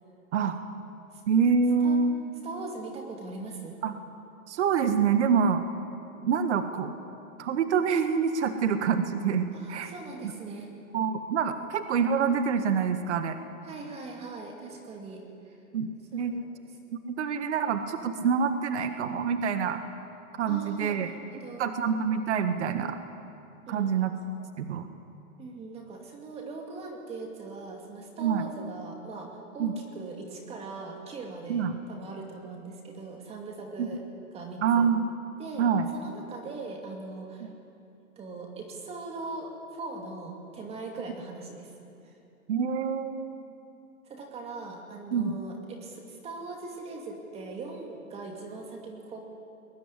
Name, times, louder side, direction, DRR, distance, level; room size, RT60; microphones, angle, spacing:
voice 1, 1.3-2.1 3.8-4.0 4.5-5.6 6.2-6.9 7.4-9.9 10.9-13.4 15.7-16.3 17.0-19.8 20.4-21.1 21.6-23.0 23.7-24.1 24.6-24.9 28.2-28.4 29.6-29.7 31.5-31.7 33.8-33.9 34.6-35.0 35.6-35.9 37.4-37.5 42.5-43.4 45.1-45.4, right 6 dB, 50° right, 8 dB, 1.6 m, -26 dB
voice 2, 2.4-3.8 9.5-10.7 11.5-11.6 13.6-15.6 16.1-16.5 20.5-21.9 23.7-23.9 25.4-34.0 34.3-34.9 35.4-35.7 35.9-37.5 38.2-41.7 44.0-49.2, right 3 dB, 15° right, 2 dB, 2.5 m, -40 dB
21.0 x 20.5 x 9.8 m, 2.7 s
hypercardioid pair, 155°, 44 cm